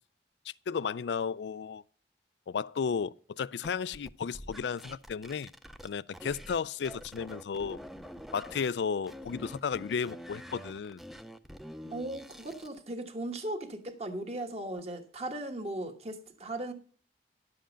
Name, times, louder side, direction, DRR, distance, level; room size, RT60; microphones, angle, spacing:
voice 1, 0.7-1.8 2.5-5.5 5.8-7.8 8.3-11.0 11.8-11.9, left 6 dB, 75° left, 0.4 m, -33 dB
sound 1, 3.6-6.6 6.8-8.7 9.0-12.8, equal, ahead, 0.4 m, -46 dB
voice 2, 11.9-16.7, right 1 dB, 35° right, 1.3 m, -37 dB
11.5 x 7.7 x 5.1 m
head